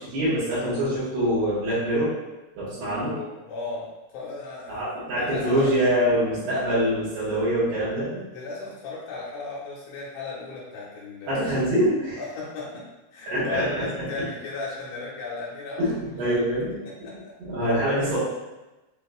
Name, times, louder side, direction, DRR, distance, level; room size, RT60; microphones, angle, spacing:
voice 1, 0.1-2.1 2.6-3.1 4.7-8.2 11.3-12.2 13.3-13.8 15.8-18.2, equal, 65° right, -13 dB, 3.3 m, -25 dB
voice 2, 2.8-3.9 4.1-4.8 5.2-5.7 8.3-11.4 12.2-12.8 13.1-16.0 16.2-16.7 17.0-17.3 17.7-17.8, left 4 dB, 85° left, -6 dB, 3.5 m, -36 dB
7.7 x 2.9 x 2.3 m, 1.1 s
omnidirectional pair, 5.4 m